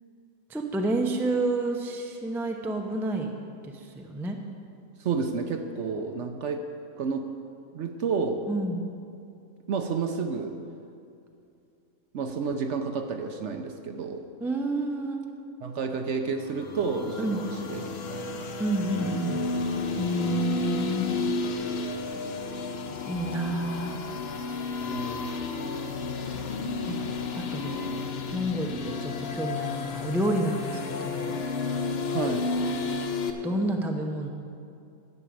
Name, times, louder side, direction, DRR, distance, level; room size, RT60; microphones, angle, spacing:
voice 1, 0.5-3.3 3.6-4.4 8.5-8.9 14.4-15.2 17.2-17.4 18.6-19.4 20.0-21.2 23.1-24.0 26.2-26.5 26.9-27.0 27.5-27.9 28.3-31.4 33.4-34.3, right 2 dB, 5° right, 3 dB, 0.4 m, -29 dB
voice 2, 5.0-6.7 7.0-7.3 7.7-8.5 9.7-10.6 12.1-14.3 15.6-18.5 19.0-19.5 24.9-25.3 32.1-32.5, right 5 dB, 60° right, 6 dB, 0.9 m, -31 dB
sound 1, 16.4-33.3, left 3 dB, 55° left, 0.8 m, -32 dB
11.0 x 6.2 x 8.5 m, 2.6 s
omnidirectional pair, 1.6 m